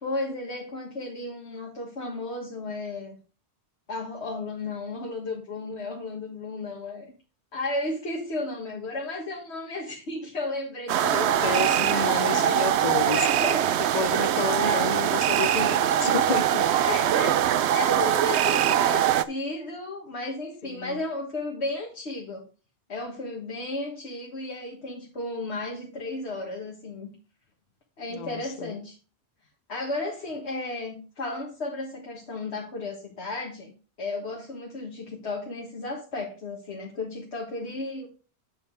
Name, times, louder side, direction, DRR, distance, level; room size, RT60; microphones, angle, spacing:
voice 1, 0.0-3.2 3.9-7.1 7.5-12.8 13.1-13.8 14.6-15.0 16.8-22.4 22.9-27.1 28.0-29.0 29.7-33.7 34.0-38.1, left 2 dB, 80° left, 1.9 m, -34 dB
sound 1, 10.9-19.2, right 11 dB, 85° right, 0.9 m, -23 dB
voice 2, 11.1-13.3 13.9-16.7 20.6-21.0 28.1-28.7, left 6 dB, 45° left, 0.8 m, -31 dB
8.5 x 5.5 x 4.7 m
omnidirectional pair, 1.1 m